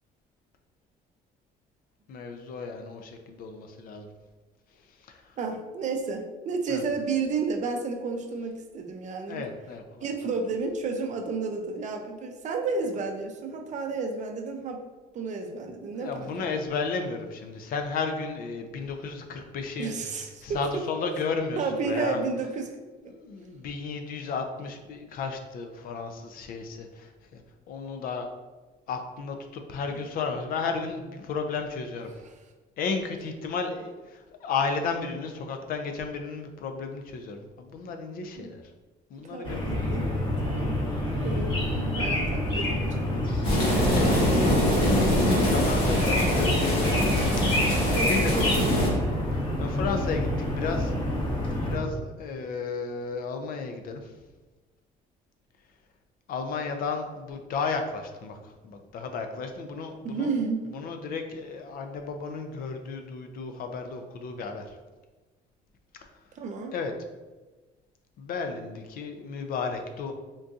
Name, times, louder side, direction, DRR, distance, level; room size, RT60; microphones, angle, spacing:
voice 1, 2.1-4.1 5.1-5.3 6.7-6.8 9.3-10.1 15.9-22.2 23.0-27.4 27.7-28.3 28.9-32.1 32.8-38.6 39.1-39.6 43.7-44.9 45.4-47.0 47.4-48.4 49.6-50.9 51.6-54.1 56.3-60.3 60.7-64.8 66.0-66.1 66.7-66.9 68.2-70.1, left 4 dB, 60° left, 5 dB, 0.4 m, -33 dB
voice 2, 5.4-9.4 10.0-14.8 15.1-16.5 19.8-20.8 21.6-22.7 23.0-23.1 38.4-38.5 39.3-40.1 40.4-40.8 41.2-43.1 44.8-45.5 47.9-48.9 60.0-60.7 66.4-66.7, right 4 dB, 45° right, 3 dB, 0.5 m, -32 dB
sound 1, 39.4-51.8, left 1 dB, 30° left, 0.8 m, -28 dB
sound 2, 43.4-48.9, equal, 80° left, 1.3 m, -24 dB
3.7 x 2.6 x 2.4 m, 1.2 s
cardioid pair, 110°, 17 cm